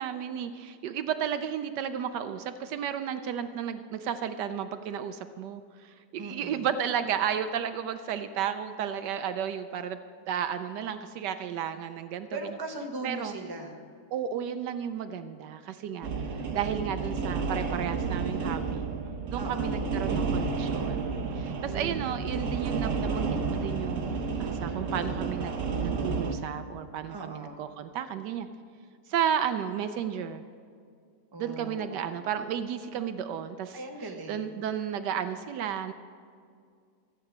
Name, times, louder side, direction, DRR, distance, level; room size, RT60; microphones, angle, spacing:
voice 1, 0.0-10.0 10.3-12.3 13.0-13.4 14.1-18.9 19.3-25.5 25.8-28.5 29.1-30.4 31.4-33.8 34.3-35.9, right 8 dB, 75° right, 10 dB, 1.2 m, -33 dB
voice 2, 6.2-6.7 12.3-13.8 19.4-19.8 21.6-22.5 27.1-27.6 31.3-32.3 33.7-34.6, right 2 dB, 15° right, 2 dB, 1.0 m, -40 dB
sound 1, 16.0-26.3, right 4 dB, 55° right, 1.2 m, -31 dB
14.5 x 8.6 x 6.0 m, 2.2 s
omnidirectional pair, 1.9 m